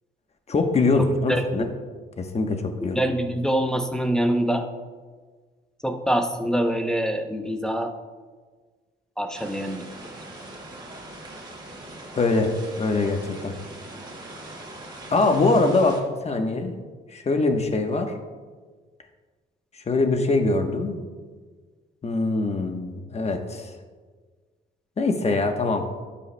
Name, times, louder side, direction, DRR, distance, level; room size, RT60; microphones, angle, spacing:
voice 1, 0.5-1.7 2.2-3.0 12.1-13.5 15.1-16.8 17.1-18.1 19.9-21.0 22.0-23.7 25.0-25.9, left 3 dB, 30° left, 5 dB, 1.0 m, -23 dB
voice 2, 1.0-1.7 2.9-4.6 5.8-7.9 9.2-9.9, right 1 dB, 5° left, 4 dB, 0.7 m, -25 dB
sound 1, 9.3-16.0, right 1 dB, 20° right, 2.2 m, -41 dB
12.0 x 8.6 x 2.2 m, 1.5 s
cardioid pair, 90°, 20 cm